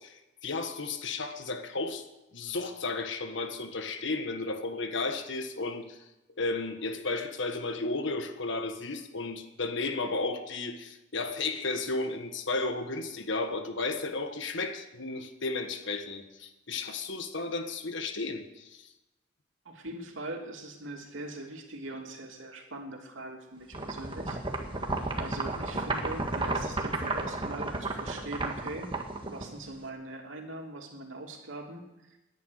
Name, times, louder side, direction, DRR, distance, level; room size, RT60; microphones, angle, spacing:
voice 1, 0.0-2.1 2.3-6.0 6.4-18.9, left 3 dB, 65° left, 7 dB, 1.6 m, -33 dB
voice 2, 19.6-24.7 25.2-28.9 29.3-32.2, right 2 dB, 75° right, 1 dB, 3.1 m, -41 dB
sound 1, 23.7-29.9, right 2 dB, 25° right, 1.8 m, -33 dB
19.0 x 10.5 x 6.6 m, 0.96 s
head